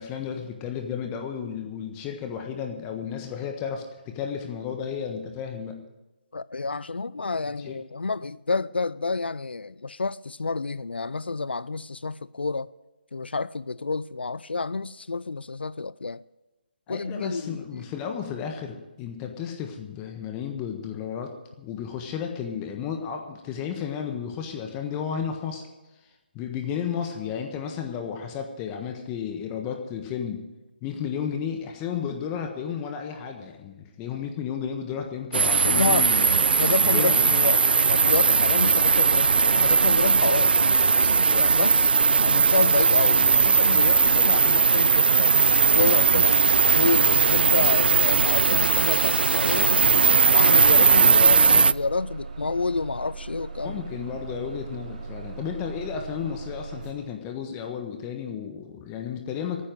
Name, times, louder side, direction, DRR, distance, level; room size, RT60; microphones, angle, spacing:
voice 1, 0.0-5.8 7.6-7.7 16.9-25.7 26.3-30.4 30.8-37.3 53.6-59.6, left 7 dB, 20° left, 1.4 m, -33 dB
voice 2, 6.3-12.7 13.1-16.2 16.9-17.8 35.7-36.1 36.5-37.6 37.9-40.5 41.0-41.9 42.2-45.3 45.7-46.4 46.8-49.7 50.3-53.8, left 3 dB, 80° left, 0.5 m, -29 dB
sound 1, 35.3-51.7, right 5 dB, 70° right, 0.4 m, -19 dB
Bus, 38.7-56.9, right 4 dB, 45° right, 3.7 m, -39 dB
13.5 x 9.6 x 7.7 m
figure-of-eight pair, 155°, 6 cm